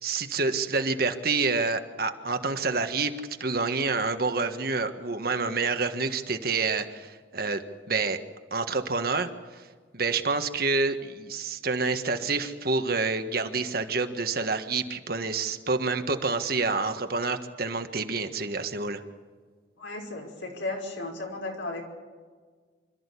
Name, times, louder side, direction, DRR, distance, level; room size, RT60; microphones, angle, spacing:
voice 1, 0.0-3.1 3.4-7.6 7.9-8.2 8.5-9.6 9.9-19.0, right 4 dB, 50° right, 7 dB, 1.5 m, -28 dB
voice 2, 19.8-21.8, left 2 dB, 85° left, 1 dB, 5.5 m, -35 dB
27.0 x 13.5 x 8.4 m, 1.5 s
head